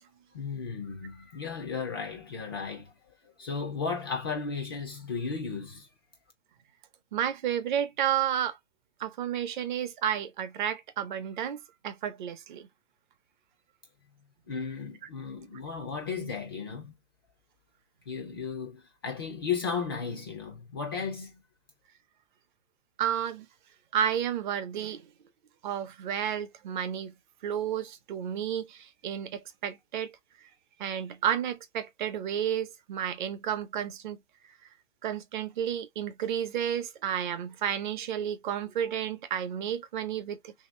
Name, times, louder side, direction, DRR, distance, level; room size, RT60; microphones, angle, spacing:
voice 1, 0.3-2.9 3.2-5.9 14.5-16.9 18.1-21.4, left 5 dB, 20° left, 0.4 m, -35 dB
voice 2, 7.1-8.6 9.0-12.7 23.0-23.5 23.9-25.1 25.6-27.1 27.4-30.1 30.8-34.2 35.0-40.5, right 9 dB, 40° right, 0.6 m, -31 dB
2.9 x 2.9 x 3.0 m
hypercardioid pair, 150°, 37 cm